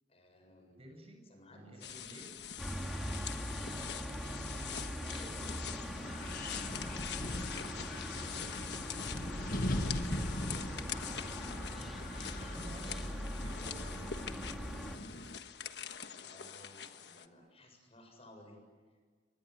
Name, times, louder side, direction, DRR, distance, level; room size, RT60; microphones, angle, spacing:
voice 1, 0.1-0.8 1.3-1.8 8.1-10.1 16.0-18.6, left 1 dB, 35° left, 4 dB, 7.4 m, -58 dB
voice 2, 0.8-1.2 1.5-2.4 3.6-5.6 10.4-12.0 12.4-14.4, right 1 dB, 35° right, 4 dB, 7.6 m, -52 dB
sound 1, 1.8-17.3, left 8 dB, 70° left, 1.4 m, -44 dB
sound 2, 2.6-15.0, equal, ahead, 2.9 m, -42 dB
Wind, 5.4-15.4, left 1 dB, 55° left, 1.9 m, -41 dB
28.5 x 25.0 x 7.9 m, 1.5 s
head